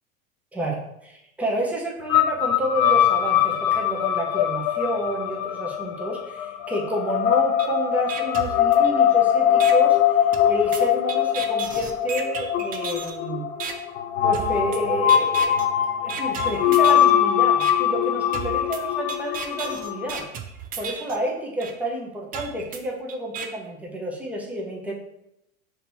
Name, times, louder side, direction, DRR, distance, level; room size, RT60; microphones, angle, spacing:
voice 1, 0.5-10.0 10.4-13.5 14.2-15.6 15.9-20.3 20.8-24.9, right 1 dB, 5° right, -2 dB, 0.8 m, -29 dB
sound 1, 2.1-20.2, left 10 dB, 70° left, 0.6 m, -22 dB
sound 2, 7.6-7.7 8.1-9.1 9.6-9.7 10.3-13.2 13.6-13.7 14.3-14.8 15.1-15.7 16.1-17.1 17.6-17.7 18.3-21.2 21.6-21.7 22.3-23.5, right 7 dB, 25° right, 0.4 m, -34 dB
5.2 x 3.0 x 2.7 m, 0.83 s
hypercardioid pair, 95°, 41 cm